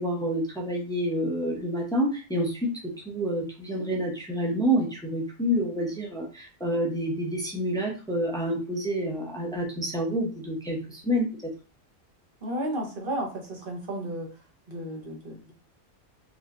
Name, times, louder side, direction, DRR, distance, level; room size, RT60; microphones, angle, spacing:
voice 1, 0.0-2.7 3.0-11.5, equal, 5° left, -1 dB, 0.7 m, -28 dB
voice 2, 12.4-14.3 14.7-15.5, right 1 dB, 40° right, 0 dB, 1.3 m, -33 dB
4.9 x 3.2 x 2.6 m, 0.35 s
omnidirectional pair, 1.5 m